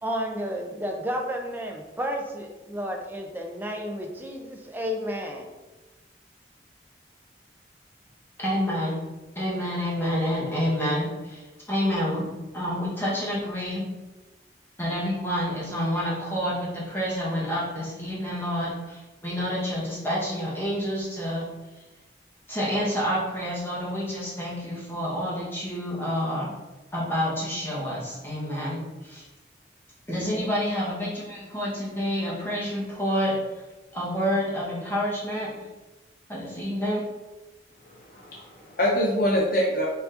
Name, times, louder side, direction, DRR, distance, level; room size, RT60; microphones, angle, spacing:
voice 1, 0.0-5.5, equal, 10° right, 1 dB, 0.5 m, -32 dB
voice 2, 8.4-9.0 9.3-13.9 14.8-21.5 22.5-26.5 26.9-29.3 30.1-33.3 33.9-35.5 36.3-37.0, equal, 15° left, -7 dB, 1.1 m, -28 dB
voice 3, 37.8-39.9, equal, 50° left, -2 dB, 0.6 m, -25 dB
4.6 x 4.1 x 2.5 m, 1.1 s
head